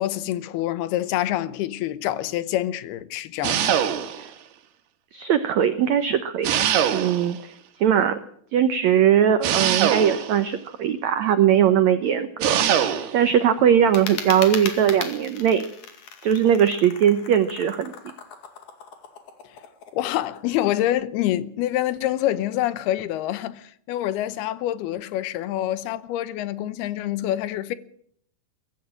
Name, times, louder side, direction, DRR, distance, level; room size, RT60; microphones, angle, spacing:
voice 1, 0.0-3.7 19.9-27.8, left 13 dB, 85° left, 3.0 m, -26 dB
sound 1, 3.4-4.3 6.4-7.4 9.4-10.5 12.4-13.2, right 9 dB, 90° right, 3.5 m, -23 dB
voice 2, 5.1-6.5 6.9-7.4 7.8-8.2 8.5-12.6 13.1-15.6 16.2-18.1, right 9 dB, 70° right, 1.7 m, -20 dB
sound 2, 13.8-20.9, left 6 dB, 55° left, 3.4 m, -37 dB
23.0 x 13.0 x 8.8 m
omnidirectional pair, 4.4 m